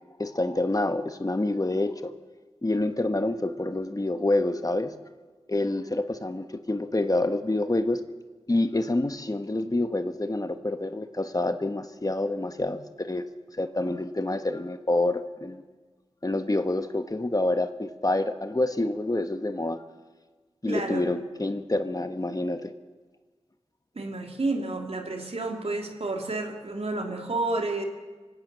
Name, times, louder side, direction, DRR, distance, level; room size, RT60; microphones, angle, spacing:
voice 1, 0.2-2.1 2.6-4.9 5.5-8.0 8.5-13.2 13.6-15.6 16.2-19.8 20.6-22.7, left 2 dB, 35° left, 8 dB, 1.3 m, -27 dB
voice 2, 20.7-21.1 23.9-27.8, right 2 dB, 65° right, 2 dB, 3.1 m, -30 dB
25.0 x 17.0 x 6.9 m, 1.3 s
wide cardioid pair, 60°, 11 cm